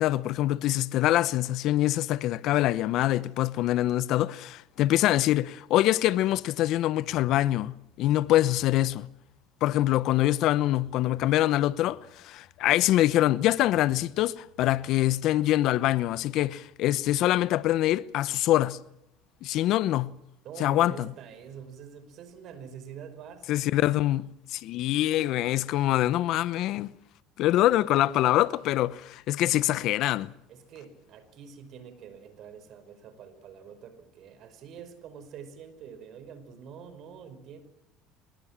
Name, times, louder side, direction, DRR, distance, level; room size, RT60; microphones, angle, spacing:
voice 1, 0.0-9.1 9.6-12.0 12.2-18.8 19.4-20.1 20.6-21.1 23.5-24.2 24.5-26.9 27.4-30.3, left 14 dB, 65° left, 0.9 m, -24 dB
voice 2, 20.4-24.0 30.5-37.6, right 7 dB, 60° right, 5.1 m, -46 dB
25.0 x 21.5 x 7.5 m
supercardioid pair, 90°, 0 cm